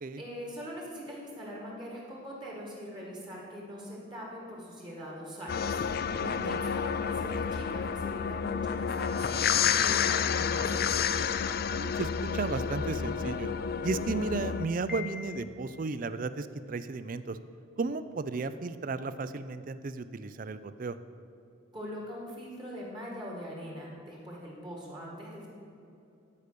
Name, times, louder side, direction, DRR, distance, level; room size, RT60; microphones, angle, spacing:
voice 1, 0.2-5.7 6.2-11.2 21.7-25.5, equal, 20° right, -3 dB, 1.8 m, -42 dB
sound 1, 5.5-14.7, left 7 dB, 45° left, 0.3 m, -30 dB
voice 2, 6.2-6.6 11.7-13.5 13.8-17.4 17.8-21.0, right 3 dB, 40° right, 13 dB, 0.4 m, -34 dB
Piano, 14.9-15.9, left 7 dB, ahead, 0.8 m, -43 dB
12.5 x 5.2 x 6.7 m, 2.7 s
head